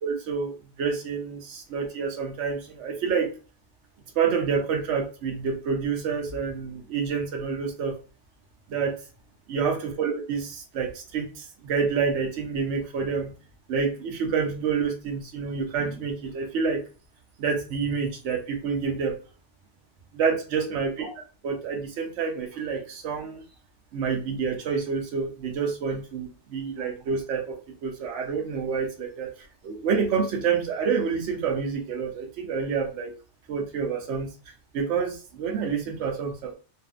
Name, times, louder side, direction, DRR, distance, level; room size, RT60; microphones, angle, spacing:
voice 1, 0.0-3.3 4.2-7.9 8.7-8.9 9.5-13.3 13.7-16.8 17.4-19.2 20.1-23.4 23.9-33.1 33.5-34.3 34.7-36.5, right 5 dB, 80° right, 2 dB, 0.9 m, -28 dB
2.6 x 2.5 x 2.4 m, 0.35 s
omnidirectional pair, 1.2 m